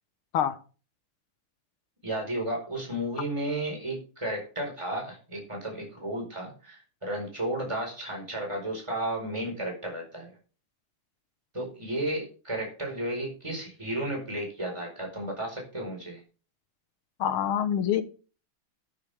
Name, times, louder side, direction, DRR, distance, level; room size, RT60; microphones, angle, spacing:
voice 1, 2.0-10.3 11.5-16.2, right 1 dB, 15° right, 1 dB, 4.8 m, -33 dB
voice 2, 17.2-18.0, left 9 dB, 85° left, 11 dB, 1.9 m, -25 dB
13.0 x 10.5 x 3.5 m, 0.37 s
omnidirectional pair, 2.3 m